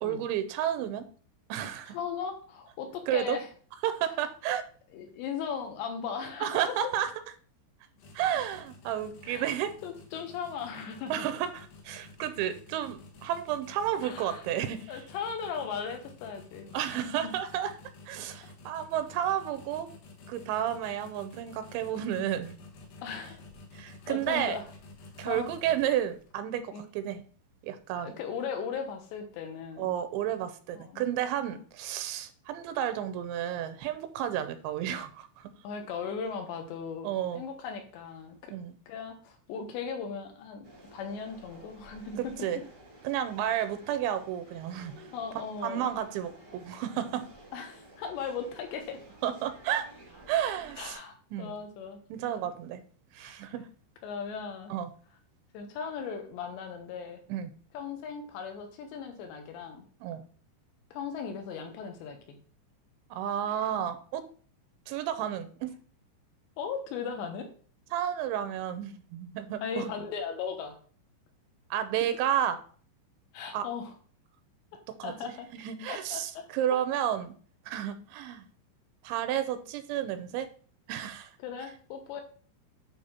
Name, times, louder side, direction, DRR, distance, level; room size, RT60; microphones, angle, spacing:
voice 1, 0.0-1.1 1.5-2.0 3.1-3.4 3.8-4.7 6.4-7.1 8.1-9.8 11.1-14.9 16.7-17.7 18.1-19.9 20.3-22.6 23.7-24.6 25.2-27.2 27.6-28.1 29.8-35.5 37.0-37.4 38.5-38.8 42.2-42.6 43.0-45.0 45.6-47.3 49.2-49.9 50.3-51.0 51.3-51.5 52.1-52.8 53.1-53.7 54.7-54.9 57.3-57.5 60.0-60.2 63.1-64.3 64.9-65.7 67.9-69.9 71.7-72.6 73.5-73.7 74.9-77.3 77.7-78.5 79.0-80.5 80.9-81.3, right 10 dB, 85° right, 10 dB, 3.0 m, -31 dB
voice 2, 1.9-3.5 4.9-6.8 9.2-11.3 14.0-14.4 14.9-16.8 17.0-17.1 23.0-23.4 24.1-24.6 25.3-25.5 26.7-26.8 28.0-30.0 30.7-31.0 31.5-31.6 35.6-38.6 38.9-42.3 45.1-45.9 47.5-49.0 50.8-52.0 53.2-53.5 54.0-54.7 55.5-57.2 57.7-59.8 60.9-62.4 63.6-63.7 66.6-67.5 69.6-70.8 72.0-72.2 73.3-73.9 75.0-75.5 75.9-76.5 81.4-82.2, left 6 dB, 80° left, 5 dB, 3.3 m, -37 dB
sound 1, 8.0-26.3, left 3 dB, 65° left, 2.8 m, -51 dB
sound 2, 40.6-50.9, right 1 dB, 40° right, 0.7 m, -53 dB
9.1 x 3.6 x 5.9 m, 0.44 s
omnidirectional pair, 5.3 m